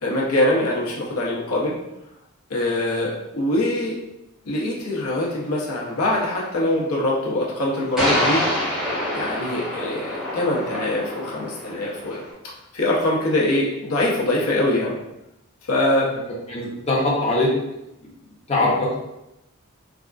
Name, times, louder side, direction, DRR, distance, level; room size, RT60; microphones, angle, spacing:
voice 1, 0.0-1.7 2.5-4.0 4.5-8.4 9.1-12.2 12.7-15.0 15.7-16.1, left 1 dB, 85° left, -4 dB, 0.8 m, -23 dB
Tanks Shooting, 8.0-12.3, left 1 dB, ahead, 1.0 m, -26 dB
voice 2, 16.5-17.5 18.5-19.0, left 2 dB, 30° left, -4 dB, 0.6 m, -21 dB
3.4 x 2.5 x 2.3 m, 0.88 s
head